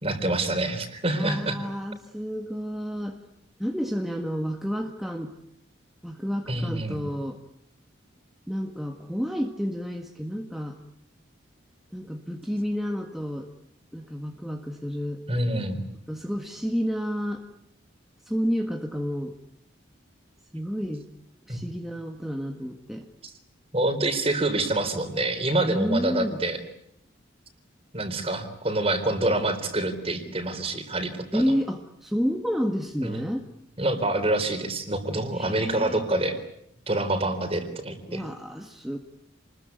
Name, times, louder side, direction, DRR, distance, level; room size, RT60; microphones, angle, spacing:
voice 1, 0.0-1.6 6.5-7.0 15.3-15.8 21.5-21.6 23.2-23.3 23.7-26.6 27.9-31.4 33.0-33.2 33.8-36.4 36.9-38.2, right 2 dB, 30° right, 8 dB, 3.9 m, -26 dB
voice 2, 1.1-3.2 3.6-5.3 6.0-7.4 8.5-10.8 11.9-13.5 13.9-15.2 16.1-17.4 18.3-19.3 20.5-21.1 21.5-23.1 25.6-26.4 31.3-33.4 35.3-36.1 38.1-39.0, equal, ahead, 2 dB, 1.7 m, -30 dB
29.0 x 21.5 x 9.5 m, 0.74 s
head